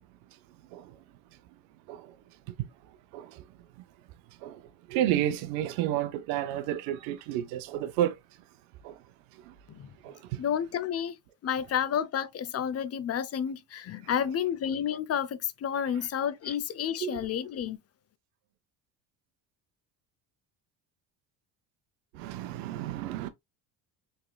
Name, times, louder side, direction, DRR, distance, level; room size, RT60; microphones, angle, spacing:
voice 1, 4.9-8.1 8.8-8.9 10.0-10.1 17.0-17.2 22.2-23.3, right 12 dB, 85° right, 0.6 m, -30 dB
voice 2, 10.4-11.2 11.4-17.8, left 8 dB, 35° left, 0.5 m, -30 dB
3.7 x 3.3 x 2.2 m
supercardioid pair, 90°, 44 cm